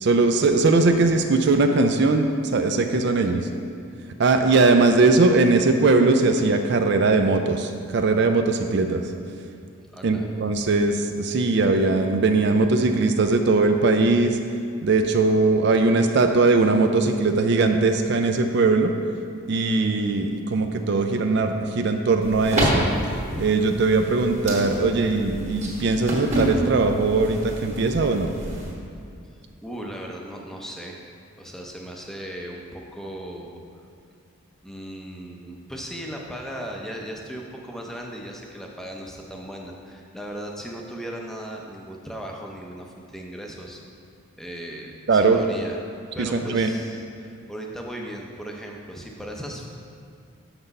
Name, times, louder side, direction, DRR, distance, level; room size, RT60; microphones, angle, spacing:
voice 1, 0.0-3.5 4.2-9.0 10.0-14.4 14.8-18.9 19.5-22.8 23.4-28.3 45.1-45.4 46.2-46.7, right 3 dB, 50° right, 6 dB, 0.4 m, -20 dB
voice 2, 9.9-10.3 29.6-31.0 31.4-33.6 34.6-43.8 44.4-45.8 46.1-49.7, right 1 dB, ahead, -1 dB, 0.6 m, -37 dB
sound 1, 22.2-28.7, right 1 dB, 30° right, 1.3 m, -28 dB
6.7 x 6.0 x 5.3 m, 2.4 s
head